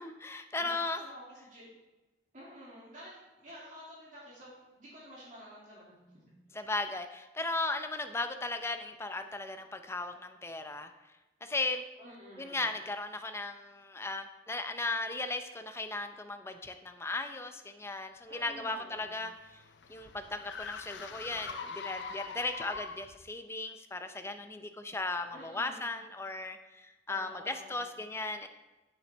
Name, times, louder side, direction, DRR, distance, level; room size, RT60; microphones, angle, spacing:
voice 1, 0.0-1.0 6.5-10.9 11.4-11.8 12.4-19.6 19.9-28.5, left 2 dB, 15° left, 8 dB, 0.5 m, -36 dB
voice 2, 1.0-1.7 2.3-6.2 12.0-12.6 18.3-19.1 25.3-25.9 27.1-27.9, equal, 45° right, -7 dB, 2.3 m, -50 dB
sound 1, 18.7-23.2, left 5 dB, 70° left, 0.5 m, -43 dB
8.9 x 6.8 x 3.4 m, 1.1 s
head